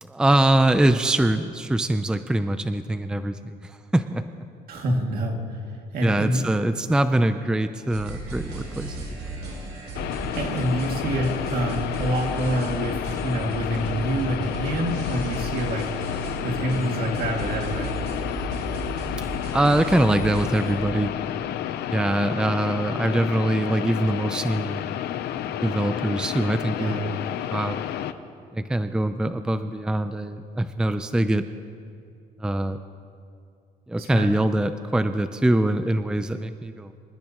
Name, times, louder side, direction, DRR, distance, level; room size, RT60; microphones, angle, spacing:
voice 1, 0.0-4.2 6.0-9.1 9.4-9.5 19.5-21.1 21.9-25.0 25.5-27.8 28.5-31.4 32.4-32.8 33.9-36.9, right 1 dB, 5° right, 10 dB, 0.5 m, -23 dB
voice 2, 4.7-5.6 5.9-6.5 10.4-15.9 16.4-18.0 26.8-27.0 34.0-34.3, right 1 dB, 60° right, 1 dB, 2.4 m, -27 dB
sound 1, 7.9-20.8, right 1 dB, 80° right, 4.9 m, -34 dB
sound 2, 9.9-28.1, left 11 dB, 75° left, 0.7 m, -31 dB
27.0 x 14.0 x 3.0 m, 2.4 s
cardioid pair, 110°, 17 cm